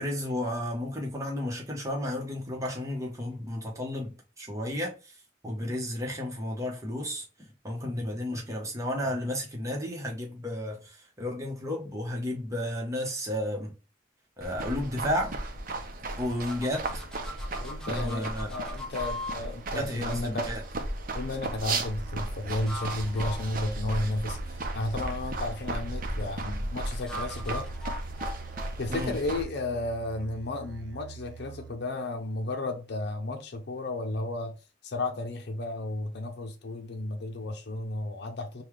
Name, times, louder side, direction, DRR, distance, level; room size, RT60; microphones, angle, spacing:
voice 1, 0.0-5.2 5.4-13.7 14.4-15.3 16.2-16.9 17.9-18.5 19.7-20.6 28.9-29.2, left 1 dB, 15° right, 1.1 m, -32 dB
sound 1, 14.4-29.4, right 2 dB, 50° right, 0.7 m, -35 dB
sound 2, 16.5-19.4 22.4-24.6 27.0-29.9, left 1 dB, 5° left, 0.5 m, -41 dB
voice 2, 17.6-20.5 21.1-27.7 28.8-34.6 34.8-38.6, left 2 dB, 65° left, 0.6 m, -33 dB
Musical instrument, 22.0-31.9, right 7 dB, 85° right, 0.4 m, -46 dB
5.5 x 2.3 x 3.2 m
head